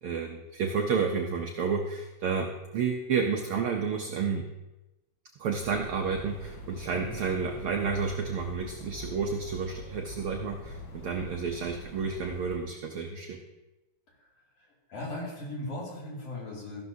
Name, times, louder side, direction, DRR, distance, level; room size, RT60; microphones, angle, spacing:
voice 1, 0.0-4.4 5.4-13.4, right 5 dB, 75° right, 2 dB, 1.3 m, -31 dB
sound 1, 5.5-12.6, left 1 dB, 75° left, 2.6 m, -44 dB
voice 2, 14.6-16.8, left 1 dB, 55° left, -4 dB, 3.5 m, -38 dB
14.0 x 12.0 x 2.7 m, 1.0 s
omnidirectional pair, 3.3 m